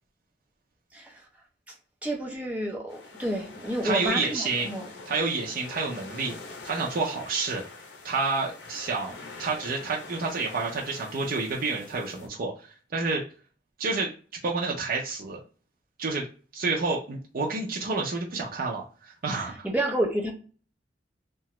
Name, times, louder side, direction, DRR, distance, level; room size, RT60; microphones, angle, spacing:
voice 1, 0.9-1.3 2.0-4.9 19.3-20.3, right 1 dB, 10° right, 0.7 m, -30 dB
sound 1, 2.9-12.3, left 3 dB, 75° left, 0.6 m, -45 dB
voice 2, 3.8-4.7 5.1-6.4 6.6-7.6 8.0-13.2 13.8-14.1 14.4-15.4 16.0-16.2 16.5-19.7, right 3 dB, 50° right, 0.5 m, -29 dB
2.8 x 2.2 x 3.0 m
head